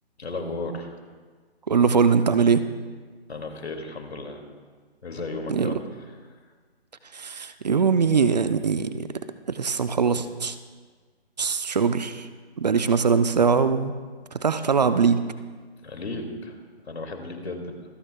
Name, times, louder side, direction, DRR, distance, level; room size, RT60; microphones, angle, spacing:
voice 1, 0.2-0.9 3.3-4.4 5.0-6.1 15.8-16.6 16.8-17.8, left 2 dB, 80° left, 4 dB, 2.4 m, -34 dB
voice 2, 1.7-2.6 5.5-5.7 7.1-9.1 9.5-10.6 11.4-12.3 12.6-13.9 14.4-15.2, right 5 dB, 40° right, 11 dB, 0.5 m, -21 dB
25.5 x 9.7 x 2.3 m, 1.5 s
hypercardioid pair, 160°, 32 cm